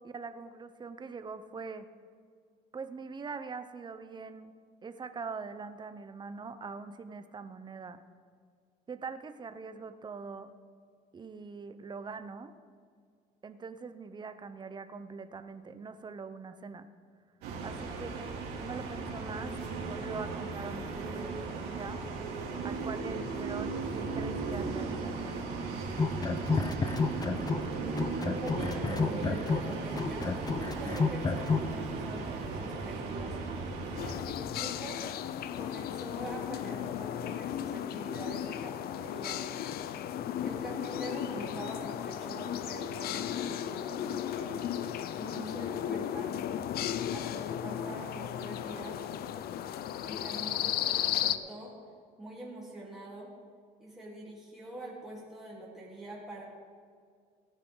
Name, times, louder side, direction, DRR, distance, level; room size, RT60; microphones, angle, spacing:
voice 1, 0.0-1.9 2.7-4.5 4.8-8.0 8.9-10.5 11.1-12.5 13.4-16.9 17.6-22.0 22.6-25.4, right 4 dB, 25° right, 10 dB, 0.8 m, -43 dB
sound 1, 17.4-34.1, right 3 dB, 85° right, 2.8 m, -36 dB
sound 2, 25.9-27.7 28.0-31.7, left 4 dB, 20° left, 0.7 m, -30 dB
voice 2, 28.4-33.4 34.3-35.0 35.5-39.4 40.4-44.7 45.2-46.3 47.1-49.0 50.0-51.7 52.2-53.3 53.8-56.4, right 1 dB, ahead, -7 dB, 3.5 m, -44 dB
sound 3, 34.0-51.4, left 10 dB, 65° left, 0.6 m, -35 dB
17.5 x 10.0 x 3.9 m, 2.1 s
cardioid pair, 110°, 17 cm